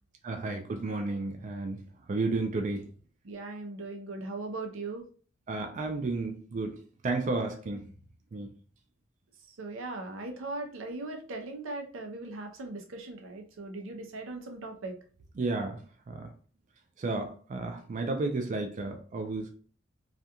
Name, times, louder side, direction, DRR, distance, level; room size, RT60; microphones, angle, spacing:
voice 1, 0.2-1.8 2.1-2.8 5.5-6.7 7.0-7.8 8.3-8.5 15.4-15.8 16.1-16.3 17.0-19.5, right 3 dB, 40° right, 0.3 m, -32 dB
voice 2, 3.2-5.0 9.6-15.0, right 2 dB, 80° right, 0.6 m, -39 dB
2.4 x 2.2 x 2.8 m
head